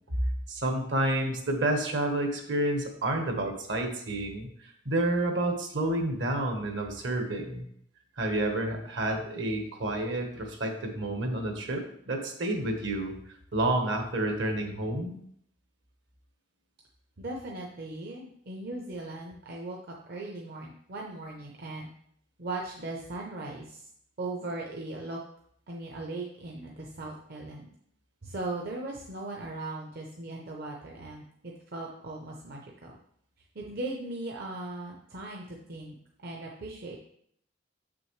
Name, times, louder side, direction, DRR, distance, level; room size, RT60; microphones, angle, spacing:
voice 1, 0.5-7.7 8.2-13.2 13.5-15.2, right 1 dB, 70° right, 4 dB, 1.2 m, -29 dB
voice 2, 17.2-19.8 20.0-21.9 22.4-23.9 24.2-25.2 25.7-27.7 28.2-32.9 33.5-37.0, right 2 dB, 55° right, 0 dB, 0.7 m, -38 dB
7.0 x 6.1 x 3.2 m, 0.69 s
head